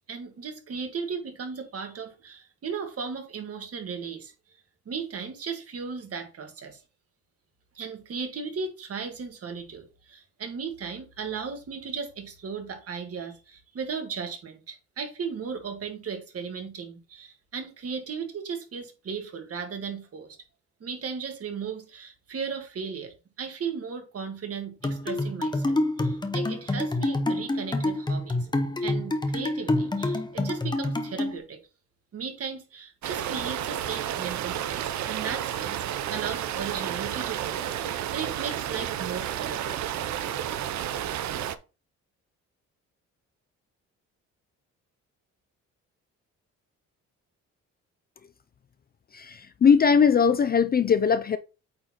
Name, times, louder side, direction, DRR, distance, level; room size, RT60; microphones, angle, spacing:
voice 1, 0.1-4.3 4.8-6.8 7.7-20.4 20.8-28.5 28.8-31.6 32.1-39.9, right 6 dB, 50° right, 1.6 m, -36 dB
sound 1, 24.8-31.4, left 2 dB, 15° left, 0.8 m, -27 dB
sound 2, 33.0-41.5, right 10 dB, 70° right, 0.6 m, -31 dB
voice 2, 49.1-51.4, left 6 dB, 30° left, 0.4 m, -20 dB
8.6 x 3.9 x 2.9 m
cardioid pair, 90°, 30 cm